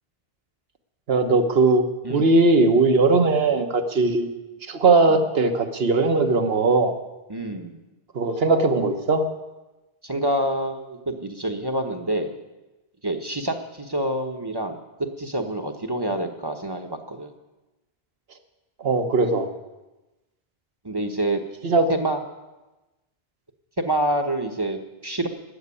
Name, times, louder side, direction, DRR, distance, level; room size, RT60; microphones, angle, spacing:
voice 1, 1.1-1.8 2.1-4.3 4.6-6.9 8.1-9.2 18.8-19.5 21.6-21.9, right 3 dB, 70° right, 6 dB, 1.4 m, -19 dB
voice 2, 7.3-7.8 10.0-12.4 13.0-17.3 20.8-21.4 21.9-22.2 23.8-25.3, right 1 dB, 25° right, 5 dB, 1.0 m, -27 dB
13.0 x 8.0 x 9.8 m, 1.1 s
omnidirectional pair, 1.0 m